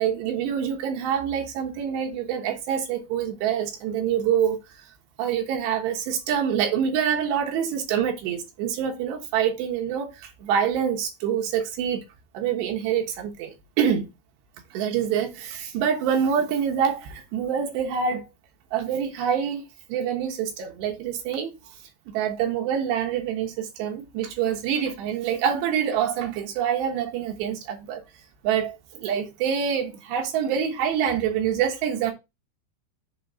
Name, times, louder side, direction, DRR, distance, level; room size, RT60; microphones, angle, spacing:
voice 1, 0.0-4.6 5.2-12.0 12.3-14.1 14.7-18.3 18.7-19.6 19.9-21.6 22.1-28.0 28.4-32.1, right 8 dB, 75° right, 3.3 m, -26 dB
7.4 x 3.0 x 5.5 m
omnidirectional pair, 5.1 m